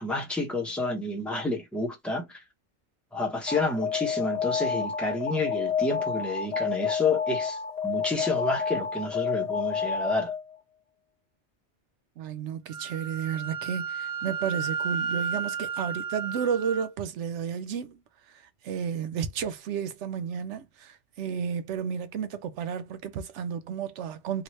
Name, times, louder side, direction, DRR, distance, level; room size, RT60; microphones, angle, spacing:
voice 1, 0.0-2.4 3.1-7.6 7.8-10.3, left 2 dB, ahead, 0.8 m, -30 dB
Alarm, 3.5-10.6, left 6 dB, 45° left, 0.6 m, -29 dB
voice 2, 12.2-18.0 18.6-24.4, right 7 dB, 85° right, 0.9 m, -32 dB
Wind instrument woodwind instrument, 12.7-16.9, right 6 dB, 55° right, 0.6 m, -33 dB
2.9 x 2.4 x 3.1 m
omnidirectional pair, 1.2 m